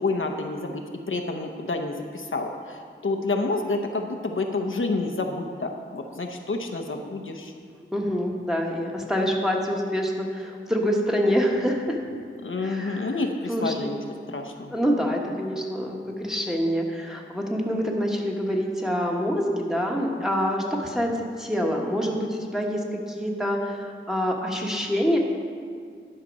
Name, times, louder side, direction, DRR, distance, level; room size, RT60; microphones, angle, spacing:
voice 1, 0.0-0.8 1.1-7.5 12.4-14.0 14.3-14.7, left 3 dB, 70° left, 3 dB, 0.7 m, -29 dB
voice 2, 7.9-12.0 12.6-13.0 13.5-13.9 14.7-22.8 23.1-25.2, equal, ahead, -1 dB, 1.3 m, -26 dB
11.0 x 5.9 x 5.3 m, 2.1 s
wide cardioid pair, 60°, 21 cm